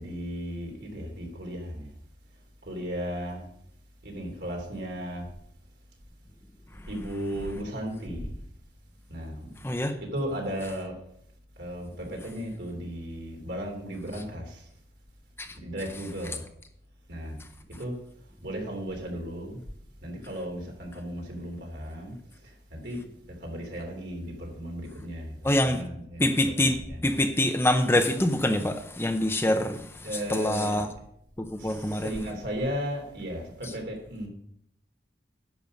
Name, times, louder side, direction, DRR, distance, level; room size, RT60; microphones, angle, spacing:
voice 1, 0.0-1.9 2.6-3.5 4.0-5.2 6.9-8.3 9.1-9.5 10.0-10.9 11.6-14.7 15.6-16.4 17.1-17.4 17.8-17.9 18.4-19.6 20.0-22.1 22.4-23.0 23.3-27.1 30.0-30.9 31.6-34.3, equal, 70° right, 3.1 m, -35 dB
voice 2, 9.6-9.9 15.4-15.6 25.4-25.8 26.2-30.9 31.4-32.2 33.6-33.7, left 1 dB, 15° left, 0.6 m, -25 dB
10.5 x 6.7 x 5.3 m
head